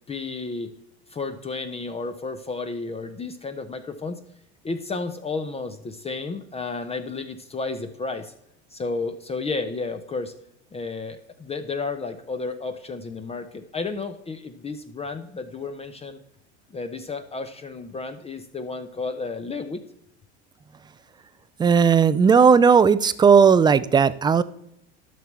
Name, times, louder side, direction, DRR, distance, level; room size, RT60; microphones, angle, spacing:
voice 1, 0.1-0.7 1.1-4.2 4.6-8.3 8.7-10.3 10.7-16.2 16.7-19.8, left 3 dB, 15° left, 8 dB, 0.8 m, -32 dB
voice 2, 21.6-24.4, right 6 dB, 15° right, 16 dB, 0.4 m, -16 dB
12.0 x 6.0 x 4.6 m, 0.75 s
supercardioid pair, 110°, 35 cm